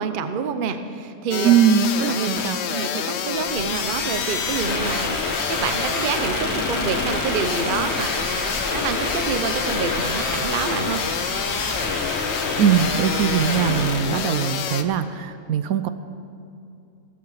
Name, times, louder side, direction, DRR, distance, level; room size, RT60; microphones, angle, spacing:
voice 1, 0.0-1.6 2.1-2.4 2.7-5.2 5.5-8.4 8.7-11.1, right 6 dB, 50° right, 9 dB, 0.7 m, -27 dB
sound 1, 1.3-14.8, left 7 dB, 60° left, 0.8 m, -27 dB
voice 2, 1.4-2.6 12.6-15.9, right 8 dB, 75° right, 11 dB, 1.0 m, -20 dB
sound 2, 3.3-14.1, left 1 dB, 10° left, 1.7 m, -29 dB
17.0 x 7.7 x 7.3 m, 2.5 s
omnidirectional pair, 1.6 m